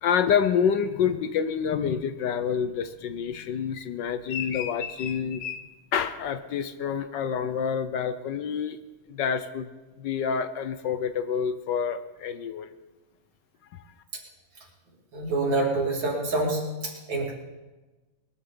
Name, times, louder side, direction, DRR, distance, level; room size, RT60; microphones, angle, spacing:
voice 1, 0.0-5.6 5.9-8.8 9.1-9.7 10.0-12.7 13.7-13.8, left 7 dB, 70° left, 11 dB, 1.3 m, -27 dB
voice 2, 15.1-17.3, right 2 dB, 70° right, -2 dB, 3.6 m, -27 dB
21.0 x 13.0 x 3.9 m, 1.2 s
omnidirectional pair, 2.1 m